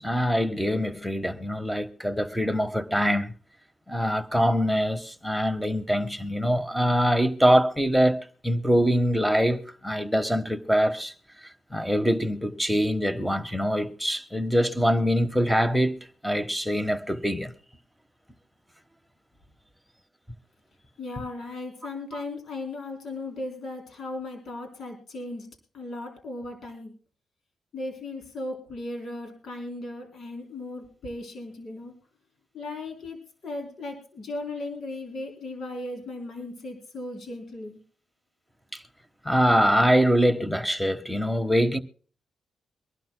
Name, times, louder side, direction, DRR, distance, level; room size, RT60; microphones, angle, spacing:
voice 1, 0.0-3.3 3.9-11.1 11.7-16.0 16.2-17.5 38.7-38.8 39.2-41.8, equal, ahead, 1.3 m, -24 dB
voice 2, 21.0-25.5 25.7-26.9 27.7-31.9 32.5-37.8, left 2 dB, 65° left, 3.7 m, -37 dB
24.0 x 12.0 x 2.2 m
cardioid pair, 80°, 0 cm